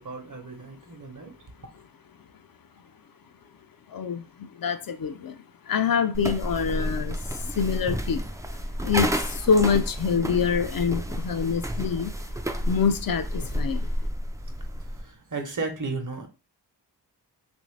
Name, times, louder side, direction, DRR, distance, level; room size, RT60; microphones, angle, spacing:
voice 1, 0.0-1.4 14.4-16.3, right 3 dB, 45° right, 0.9 m, -35 dB
voice 2, 3.9-4.3 4.6-8.6 8.8-12.1 12.7-13.9, left 6 dB, 55° left, 0.5 m, -26 dB
sound 1, 6.1-15.1, equal, 10° right, 0.3 m, -30 dB
3.1 x 2.6 x 3.2 m
cardioid pair, 40°, 43 cm